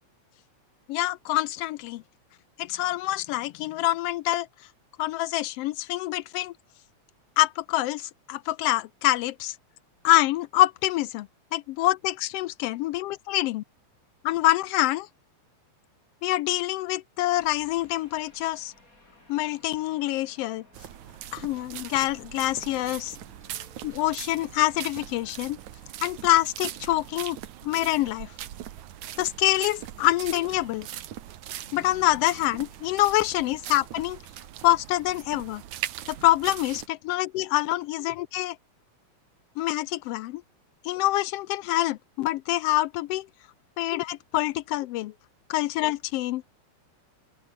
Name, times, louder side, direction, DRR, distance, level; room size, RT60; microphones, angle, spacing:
voice 1, 0.9-2.0 2.6-4.5 5.0-6.5 7.4-9.6 10.0-13.6 14.2-15.1 16.2-18.7 19.3-20.6 21.3-23.2 23.8-25.6 26.0-27.4 27.6-28.3 29.2-30.9 31.7-34.2 34.6-35.6 36.1-38.6 39.6-40.4 40.8-43.3 43.8-45.1 45.5-46.4, left 16 dB, 80° left, 1.4 m, -26 dB
sound 1, 17.4-25.9, left 1 dB, 25° left, 8.4 m, -58 dB
sound 2, 20.7-36.9, right 12 dB, 80° right, 2.8 m, -41 dB
open air
omnidirectional pair, 3.3 m